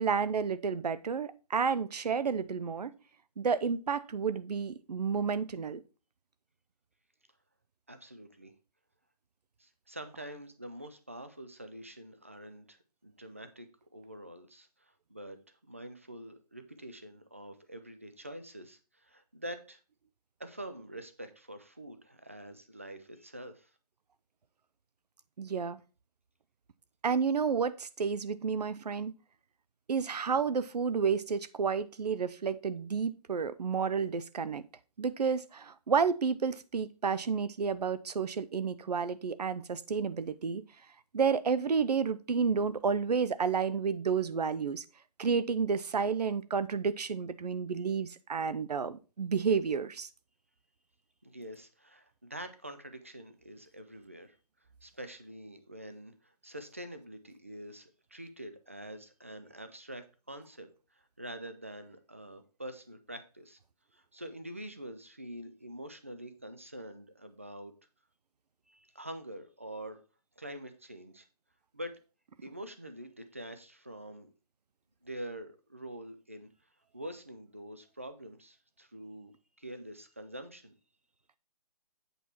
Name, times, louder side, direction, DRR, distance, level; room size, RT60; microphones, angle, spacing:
voice 1, 0.0-2.9 3.4-5.8 25.4-25.8 27.0-29.1 29.9-34.6 35.0-40.6 41.1-44.8 45.2-50.1, right 6 dB, 85° right, 16 dB, 0.7 m, -31 dB
voice 2, 7.9-8.5 9.6-12.8 13.0-13.7 13.9-19.8 20.4-23.7 51.2-54.4 54.8-63.6 63.9-67.7 68.7-70.0 70.4-71.3 71.7-72.0 72.4-74.3 75.0-76.5 76.9-79.3 79.6-80.7, right 1 dB, 20° right, 9 dB, 0.4 m, -45 dB
7.9 x 4.7 x 4.3 m, 0.34 s
hypercardioid pair, 180°, 20 cm